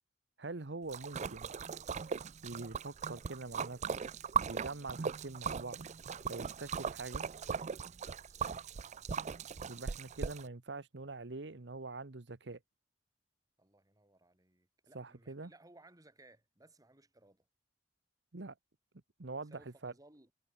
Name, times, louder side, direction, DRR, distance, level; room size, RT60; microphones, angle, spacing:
voice 1, 0.4-1.5 2.4-3.8 4.5-5.8 6.3-7.2 9.7-12.6 14.9-15.5 18.3-18.5 19.2-19.9, right 3 dB, 70° right, 1.1 m, -44 dB
Splash splatter, 0.9-10.4, right 6 dB, 40° right, 0.4 m, -39 dB
voice 2, 8.2-8.7 13.6-17.5 19.4-20.3, right 2 dB, 20° right, 2.6 m, -62 dB
head